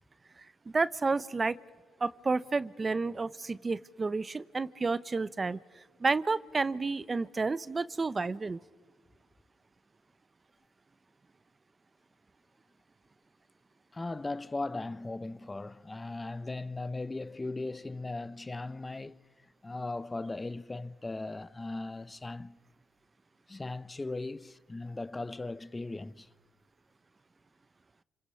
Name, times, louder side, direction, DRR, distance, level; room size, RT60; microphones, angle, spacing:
voice 1, 0.7-1.6 2.0-5.6 6.0-8.6, right 3 dB, 30° right, 0.7 m, -30 dB
voice 2, 13.9-19.2 19.6-22.6 23.5-26.3, left 2 dB, 20° left, 0.7 m, -38 dB
29.0 x 27.5 x 5.7 m
cardioid pair, 90°, 0 cm